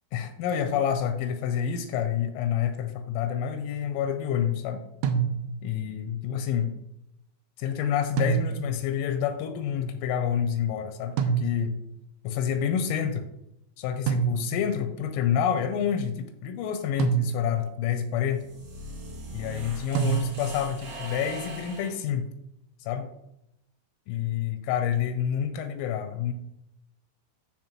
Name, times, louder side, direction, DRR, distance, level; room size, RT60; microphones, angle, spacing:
voice 1, 0.1-4.8 5.6-6.7 7.6-11.8 12.2-13.2 13.8-18.4 19.3-22.3 22.9-23.1 24.1-26.3, left 8 dB, 85° left, 7 dB, 3.1 m, -28 dB
sound 1, 5.0-5.8 8.2-8.9 11.2-11.9 14.1-14.8 17.0-17.8 19.9-20.7, right 7 dB, 85° right, 2.6 m, -27 dB
sound 2, 18.2-22.0, right 1 dB, 55° right, 2.9 m, -40 dB
13.0 x 4.6 x 3.0 m, 0.83 s
omnidirectional pair, 6.0 m